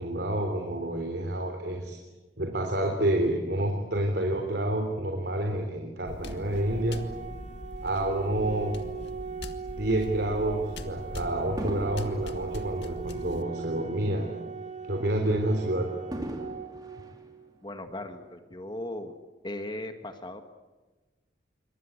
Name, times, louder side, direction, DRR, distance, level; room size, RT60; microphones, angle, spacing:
voice 1, 0.0-2.0 2.4-7.0 7.8-8.7 9.7-14.3 14.8-15.9, right 1 dB, 65° right, 3 dB, 3.6 m, -28 dB
sound 1, 6.1-13.4, left 1 dB, 70° left, 1.9 m, -42 dB
Fireworks, 6.2-8.8 9.5-9.7 11.6-14.1 14.4-14.5 16.1-18.0 18.7-18.8, right 1 dB, 20° right, 3.1 m, -42 dB
Organ, 6.5-17.5, right 5 dB, 40° right, 2.5 m, -39 dB
voice 2, 17.6-19.2 19.4-20.4, left 1 dB, 25° left, 6 dB, 1.9 m, -37 dB
27.5 x 24.5 x 8.3 m, 1.2 s
head